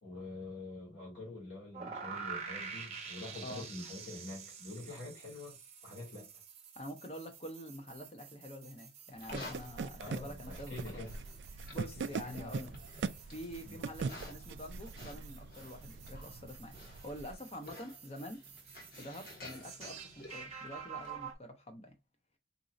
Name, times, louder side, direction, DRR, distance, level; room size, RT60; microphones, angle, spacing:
voice 1, 0.0-5.6 5.8-6.3 10.0-11.1 12.0-12.7 13.6-13.8, left 2 dB, 90° left, 2.3 m, -46 dB
sound 1, 1.7-21.3, right 6 dB, 35° right, 0.7 m, -49 dB
voice 2, 6.8-11.0 11.5-18.4 18.9-21.9, left 1 dB, 35° left, 0.7 m, -47 dB
Livestock farm animals working animals, 9.1-21.3, left 1 dB, 55° left, 1.4 m, -53 dB
sound 2, 9.3-17.3, right 5 dB, 70° right, 0.3 m, -42 dB
4.0 x 2.7 x 2.5 m
head